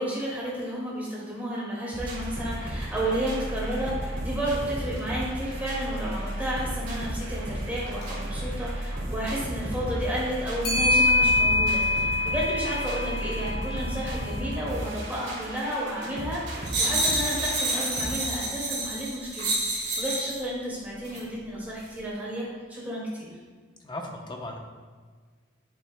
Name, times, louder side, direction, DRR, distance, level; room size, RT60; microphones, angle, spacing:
voice 1, 0.0-23.3, equal, 10° right, -6 dB, 2.0 m, -32 dB
sound 1, 1.9-18.1, right 1 dB, 75° right, 2.1 m, -34 dB
Clock, 4.4-4.5 5.0-5.1 7.9-8.1 10.6-14.9, left 2 dB, 50° left, 1.8 m, -25 dB
sound 2, 16.7-20.4 21.1-21.2, right 2 dB, 55° right, 2.0 m, -28 dB
voice 2, 23.8-24.6, left 1 dB, 25° left, 2 dB, 0.8 m, -37 dB
9.0 x 6.9 x 2.2 m, 1.5 s
head